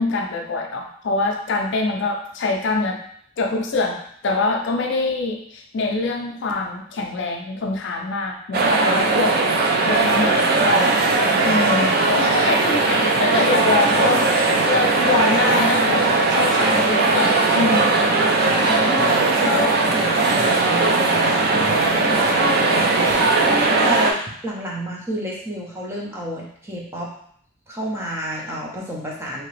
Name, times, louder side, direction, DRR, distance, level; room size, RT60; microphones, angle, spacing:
voice 1, 0.0-3.0 3.4-11.0 11.4-18.0 19.4-19.8, left 3 dB, 60° left, 2 dB, 0.5 m, -24 dB
sound 1, 8.5-24.1, right 3 dB, 50° right, 0.4 m, -19 dB
sound 2, 10.0-23.7, right 2 dB, 65° right, 0.9 m, -32 dB
voice 2, 11.3-11.6 18.7-19.6 19.9-23.1 23.4-27.1 27.7-29.4, equal, 15° right, -4 dB, 0.7 m, -30 dB
2.9 x 2.8 x 3.1 m, 0.63 s
head